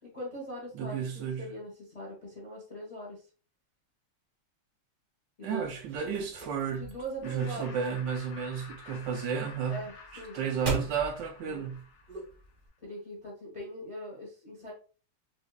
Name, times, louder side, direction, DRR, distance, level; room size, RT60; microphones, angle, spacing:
voice 1, 0.0-3.2 5.4-5.8 6.7-7.7 9.7-10.7 11.4-11.7 12.8-14.7, equal, 35° left, 0.6 m, -41 dB
voice 2, 0.7-1.4 5.4-6.9 7.2-9.8 10.1-11.8, right 7 dB, 75° right, 1.1 m, -32 dB
sound 1, 5.6-12.7, right 1 dB, 40° right, 0.7 m, -42 dB
Laughter, 7.2-12.5, left 5 dB, 70° left, 1.4 m, -51 dB
4.4 x 2.6 x 2.2 m
omnidirectional pair, 2.3 m